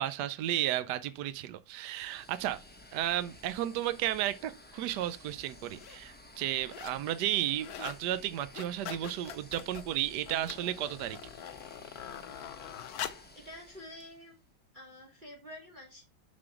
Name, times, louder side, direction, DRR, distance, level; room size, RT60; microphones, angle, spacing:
voice 1, 0.0-2.6 2.9-11.2, right 13 dB, 70° right, 1.0 m, -33 dB
sound 1, 1.7-14.4, left 1 dB, 10° left, 0.4 m, -54 dB
sound 2, 4.7-4.9 5.6-6.0 6.3-7.0 7.3-8.0 8.4-13.3 14.0-14.1, left 9 dB, 65° left, 1.0 m, -44 dB
voice 2, 13.3-14.4 14.7-16.0, left 1 dB, 25° right, 2.0 m, -48 dB
7.6 x 4.2 x 5.9 m
omnidirectional pair, 2.2 m